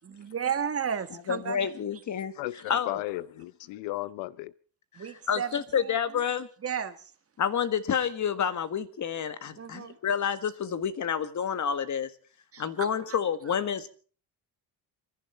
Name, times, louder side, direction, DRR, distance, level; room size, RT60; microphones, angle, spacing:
voice 1, 0.0-1.6 4.9-6.2 6.6-7.1 9.6-10.0 12.5-13.2, right 7 dB, 35° right, 1.5 m, -34 dB
voice 2, 1.3-2.3 2.7-3.0 5.3-6.5 7.4-12.1 12.6-13.9, left 8 dB, 45° left, 1.6 m, -29 dB
voice 3, 2.4-4.5, left 17 dB, 90° left, 0.8 m, -35 dB
29.0 x 11.0 x 4.4 m
cardioid pair, 100°, 42 cm